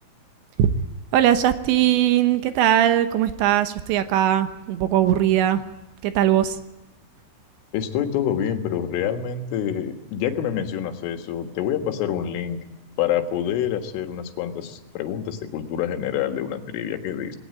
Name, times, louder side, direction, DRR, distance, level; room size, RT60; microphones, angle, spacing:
voice 1, 1.1-5.6 6.0-6.6, right 11 dB, 75° right, 9 dB, 3.2 m, -20 dB
voice 2, 7.7-12.6 13.0-17.4, left 9 dB, 85° left, 6 dB, 4.2 m, -27 dB
20.5 x 18.0 x 9.2 m, 1.1 s
omnidirectional pair, 5.5 m